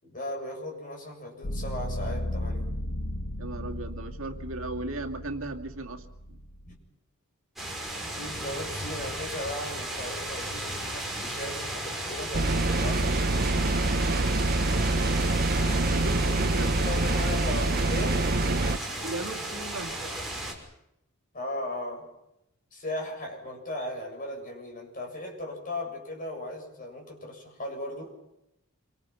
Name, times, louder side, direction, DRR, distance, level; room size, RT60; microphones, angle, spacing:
voice 1, 0.0-2.7 6.7-6.8 8.0-13.2 16.6-18.2 21.3-22.1 22.7-28.2, left 1 dB, 40° left, 2 dB, 7.2 m, -37 dB
sound 1, 1.4-6.7, left 1 dB, 75° left, 1.6 m, -35 dB
voice 2, 3.4-6.4 13.9-14.3 15.9-16.8 19.0-20.0, right 2 dB, 65° right, 2 dB, 2.4 m, -37 dB
sound 2, 7.6-20.5, right 1 dB, ahead, 6.0 m, -35 dB
sound 3, 12.3-18.8, right 2 dB, 45° right, 0.9 m, -25 dB
27.5 x 25.5 x 6.0 m, 0.84 s
head